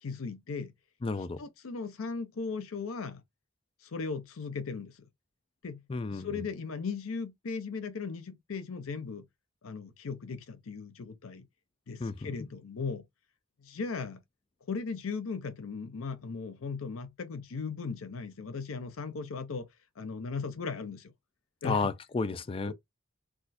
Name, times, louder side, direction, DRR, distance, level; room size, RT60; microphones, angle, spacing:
voice 1, 0.0-0.7 1.4-3.2 3.9-4.9 5.6-5.8 6.1-9.2 9.6-11.5 11.9-13.0 13.6-14.2 14.7-19.7 20.0-21.1 21.6-21.9 22.7-22.8, left 4 dB, 75° left, 0.6 m, -37 dB
voice 2, 1.0-1.4 5.9-6.3 12.0-12.3 21.6-22.7, left 4 dB, 25° left, 0.3 m, -32 dB
2.4 x 2.3 x 4.0 m
head